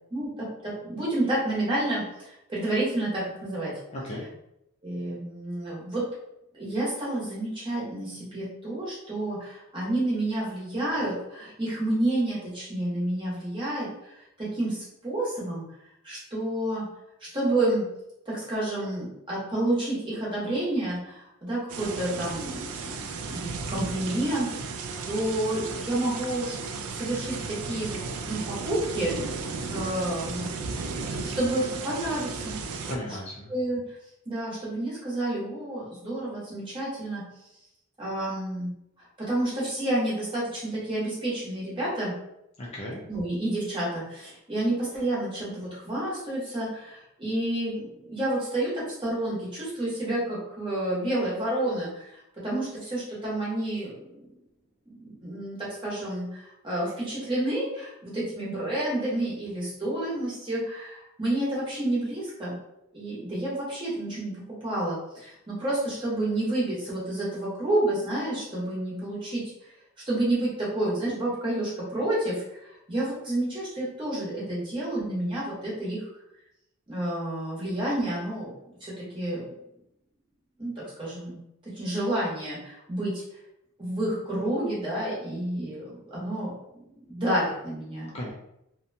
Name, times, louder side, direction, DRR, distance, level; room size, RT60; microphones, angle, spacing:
voice 1, 0.1-3.7 4.8-6.0 6.5-13.9 14.4-15.6 16.0-16.9 17.2-17.9 18.2-24.7 25.0-26.5 26.9-28.0 28.2-29.1 29.7-30.6 31.1-32.6 33.1-33.2 33.5-33.8 34.3-37.2 38.0-38.8 39.2-42.2 43.1-52.2 52.4-54.3 54.9-62.6 62.9-64.3 64.6-69.4 70.1-76.0 76.9-78.5 78.8-79.4 80.6-81.4 81.8-83.2 83.8-86.8 87.1-88.1, right 1 dB, 20° right, -7 dB, 0.9 m, -29 dB
voice 2, 3.9-4.3 32.9-33.5 42.6-43.0 88.1-88.3, left 1 dB, 30° left, -4 dB, 0.4 m, -35 dB
sound 1, 21.7-33.0, right 4 dB, 80° right, 0.3 m, -35 dB
2.7 x 2.1 x 2.6 m, 0.82 s
head